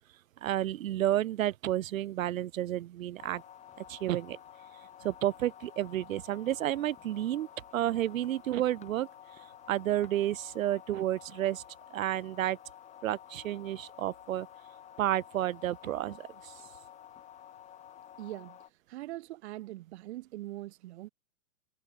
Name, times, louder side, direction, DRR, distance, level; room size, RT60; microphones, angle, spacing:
voice 1, 0.4-3.4 3.8-4.4 5.0-7.5 7.7-9.1 9.7-11.6 11.9-12.6 13.0-14.5 15.0-16.5, right 13 dB, 65° right, 2.1 m, -31 dB
sound 1, 3.2-18.7, left 10 dB, 15° left, 2.2 m, -52 dB
voice 2, 18.2-21.1, right 16 dB, 50° right, 1.8 m, -42 dB
hypercardioid pair, 160°, 44 cm